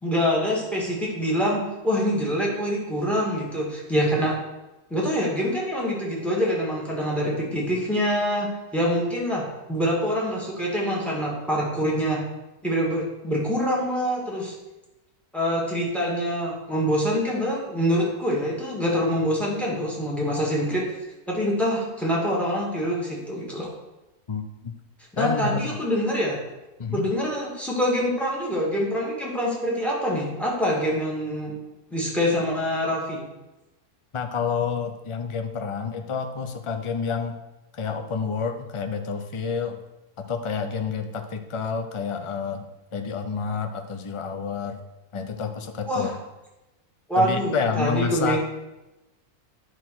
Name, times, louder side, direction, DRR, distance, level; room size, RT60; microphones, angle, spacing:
voice 1, 0.0-4.4 4.9-9.4 9.7-12.2 12.6-14.5 15.3-21.0 21.3-23.7 25.1-26.3 26.9-31.5 31.9-33.2 45.9-46.1 47.1-48.4, equal, ahead, -3 dB, 2.3 m, -25 dB
voice 2, 24.3-24.7 25.2-25.8 26.8-27.1 34.1-37.4 37.7-39.8 40.2-44.8 45.1-46.1 47.1-48.4, left 5 dB, 40° left, 6 dB, 0.4 m, -29 dB
9.4 x 4.5 x 6.1 m, 1.0 s
omnidirectional pair, 1.6 m